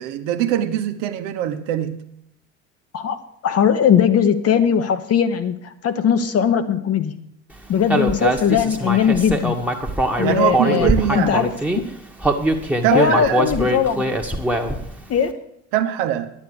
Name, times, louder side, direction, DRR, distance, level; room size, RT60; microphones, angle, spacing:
voice 1, 0.0-2.0 10.2-11.4 12.8-13.6 15.7-16.3, right 11 dB, 65° right, 1.1 m, -22 dB
voice 2, 3.4-7.2 7.7-9.6 10.2-11.5 12.9-14.1 15.1-15.4, left 8 dB, 40° left, 1.0 m, -19 dB
Human voice, 7.9-11.8 12.2-14.9, right 1 dB, 5° right, 1.4 m, -22 dB
10.5 x 8.5 x 6.8 m
figure-of-eight pair, 55°, 36 cm